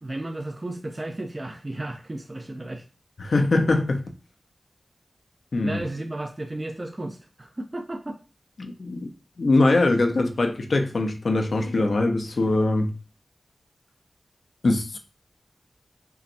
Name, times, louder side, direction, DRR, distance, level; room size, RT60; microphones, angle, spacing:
voice 1, 0.0-2.8 5.6-8.2, right 1 dB, 30° right, 2 dB, 0.5 m, -34 dB
voice 2, 3.2-4.0 5.5-5.8 8.6-9.1 9.4-12.9 14.6-15.0, left 2 dB, 70° left, 5 dB, 0.6 m, -22 dB
5.6 x 2.2 x 2.6 m, 0.34 s
wide cardioid pair, 60°, 0 cm